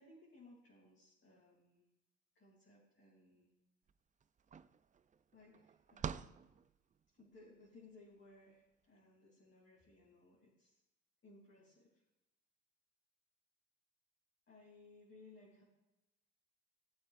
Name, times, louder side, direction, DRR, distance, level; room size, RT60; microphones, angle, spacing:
voice 1, 0.0-1.9 2.3-3.5 5.3-6.5 7.1-10.8 11.2-12.0 14.5-15.6, left 2 dB, 40° left, -5 dB, 3.2 m, -62 dB
sound 1, 3.9-4.0 4.2-7.3, right 7 dB, 25° right, 0.3 m, -47 dB
18.0 x 7.7 x 2.5 m, 0.97 s
cardioid pair, 90°, 30 cm